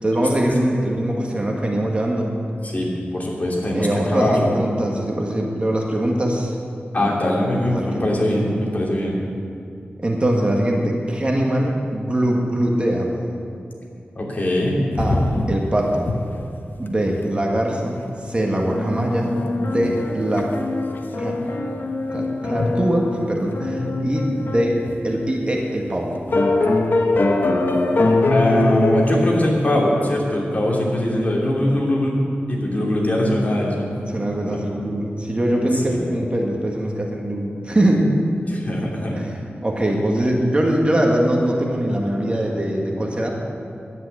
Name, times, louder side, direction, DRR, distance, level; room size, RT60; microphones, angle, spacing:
voice 1, 0.0-2.4 3.7-6.6 7.0-8.0 8.3-8.6 10.0-13.2 15.0-16.1 16.8-19.3 19.6-20.5 21.2-21.4 22.1-24.8 25.0-26.2 34.1-38.2 39.1-39.3 39.6-43.4, right 1 dB, 30° right, -1 dB, 1.8 m, -22 dB
voice 2, 2.6-4.5 6.9-9.2 14.1-14.8 23.8-24.1 28.3-32.2 32.5-33.9 34.4-34.6 35.8-36.0 38.5-39.1, left 1 dB, 40° left, -3 dB, 3.1 m, -21 dB
sound 1, 15.0-15.7 16.0-16.1 16.5-16.6 16.8-17.2 18.2-18.3 18.6-25.0 25.6-25.7 26.3-29.2, left 2 dB, 55° left, 1.1 m, -22 dB
11.0 x 9.5 x 9.5 m, 2.5 s
wide cardioid pair, 100°, 4 cm